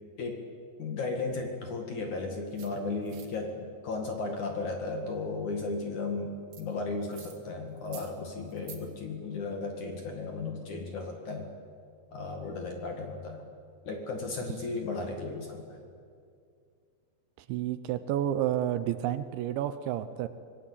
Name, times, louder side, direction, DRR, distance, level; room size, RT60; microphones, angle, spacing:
voice 1, 0.8-11.5 12.1-13.4 13.8-15.8, left 3 dB, 50° left, 3 dB, 2.7 m, -35 dB
sound 1, 2.6-2.7 3.1-3.3 6.5-6.6 7.0-7.4 7.8-8.1 8.5-8.8, right 9 dB, 60° right, 4.0 m, -48 dB
voice 2, 17.5-20.3, right 11 dB, 80° right, 12 dB, 2.9 m, -30 dB
24.5 x 20.0 x 8.6 m, 2.3 s
omnidirectional pair, 5.6 m